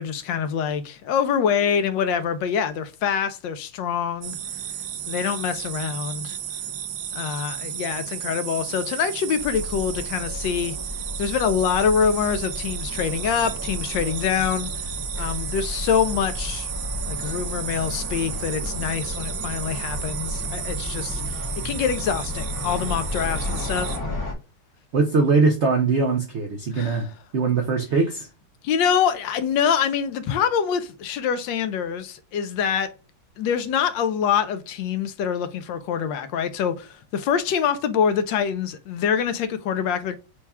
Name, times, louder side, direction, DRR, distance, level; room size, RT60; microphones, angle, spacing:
voice 1, 0.0-4.4 5.1-6.4 7.1-10.8 11.2-14.9 15.2-16.7 17.0-24.0 26.7-27.1 28.6-32.9 33.4-40.2, left 7 dB, 75° left, 1.3 m, -25 dB
sound 1, 4.2-24.0, right 9 dB, 70° right, 1.1 m, -33 dB
sound 2, 9.4-24.3, left 2 dB, 20° left, 0.5 m, -33 dB
voice 2, 24.9-27.1 27.3-28.3, right 4 dB, 85° right, 0.6 m, -21 dB
4.6 x 2.3 x 4.1 m
omnidirectional pair, 2.1 m